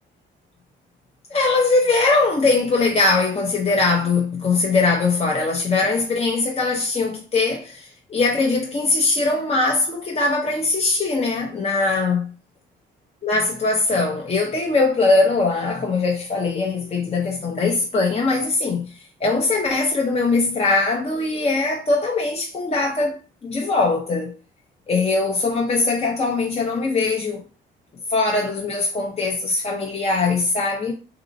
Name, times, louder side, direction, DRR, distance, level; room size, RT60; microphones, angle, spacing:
voice 1, 1.3-12.3 13.2-18.9 19.2-23.2 23.4-24.3 24.9-27.4 28.1-30.9, left 3 dB, 30° left, 0.7 m, -21 dB
4.0 x 2.7 x 2.6 m
cardioid pair, 90°, 20 cm